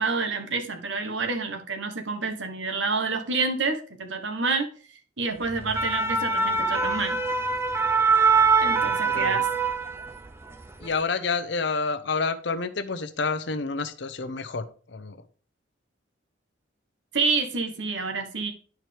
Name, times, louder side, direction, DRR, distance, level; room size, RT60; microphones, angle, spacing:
voice 1, 0.0-4.7 5.2-7.4 8.6-9.5 17.1-18.5, right 4 dB, 80° right, 6 dB, 1.2 m, -28 dB
sound 1, 5.5-10.3 10.6-10.9, right 4 dB, 15° right, 0.5 m, -23 dB
voice 2, 8.7-9.4 10.8-15.2, left 4 dB, 65° left, 10 dB, 0.7 m, -29 dB
10.5 x 4.6 x 3.3 m, 0.40 s
head